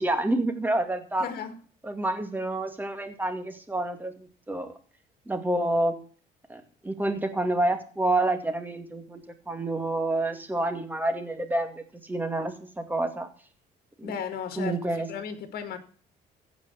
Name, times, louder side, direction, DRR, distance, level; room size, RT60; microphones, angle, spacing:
voice 1, 0.0-1.3 1.8-4.8 5.3-5.9 6.5-13.3 14.0-14.1 14.6-15.1, right 2 dB, 10° right, 2.2 m, -28 dB
voice 2, 1.2-1.6 14.0-14.8 15.1-15.8, left 7 dB, 65° left, 2.2 m, -34 dB
15.5 x 5.2 x 8.1 m
cardioid pair, 110°, 17 cm